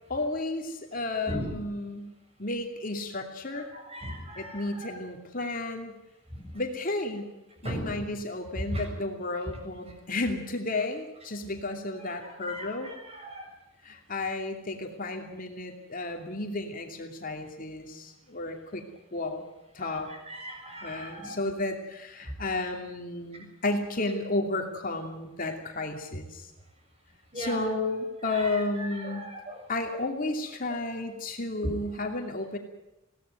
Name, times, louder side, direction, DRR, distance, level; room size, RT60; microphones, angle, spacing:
voice 1, 0.1-2.1 2.4-3.7 4.4-6.0 6.5-7.3 7.6-12.9 13.8-18.8 19.1-19.4 19.7-20.1 20.8-26.5 27.3-29.3 29.7-32.6, left 2 dB, 40° left, 3 dB, 2.7 m, -32 dB
voice 2, 3.5-4.9 6.3-6.4 7.6-8.0 8.7-8.8 12.2-13.5 19.8-21.4 27.3-27.7 28.3-29.6 29.9-30.0 30.7-30.8, right 1 dB, 30° right, 3 dB, 7.3 m, -38 dB
22.0 x 17.0 x 9.2 m, 0.95 s
head